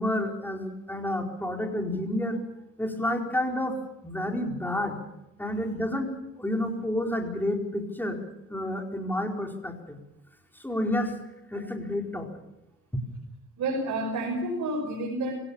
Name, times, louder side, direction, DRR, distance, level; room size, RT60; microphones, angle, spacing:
voice 1, 0.0-2.4 2.8-3.8 4.0-5.0 5.4-6.1 6.4-8.2 8.5-10.0 10.6-11.1 11.5-12.3 12.9-13.0, left 1 dB, 5° left, 2 dB, 4.5 m, -29 dB
voice 2, 13.6-15.4, right 1 dB, 70° right, 0 dB, 5.9 m, -30 dB
25.5 x 17.5 x 7.2 m, 0.86 s
cardioid pair, 90°, 30 cm